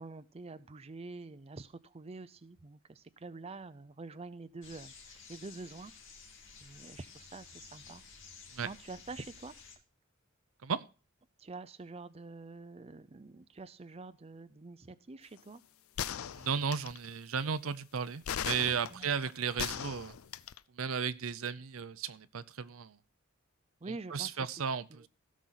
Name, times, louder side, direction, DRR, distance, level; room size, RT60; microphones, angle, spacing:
voice 1, 0.0-5.9 6.6-8.0 8.6-9.5 11.4-15.6 18.9-19.1 23.8-24.5 24.9-25.1, right 3 dB, 30° right, 0.5 m, -46 dB
sound 1, 4.6-9.8, left 5 dB, 60° left, 2.3 m, -53 dB
sound 2, 16.0-17.1 18.3-20.6, left 9 dB, 85° left, 0.5 m, -38 dB
voice 2, 16.3-20.2 20.7-23.0 24.1-25.1, right 6 dB, 75° right, 0.6 m, -35 dB
16.5 x 6.2 x 4.0 m
head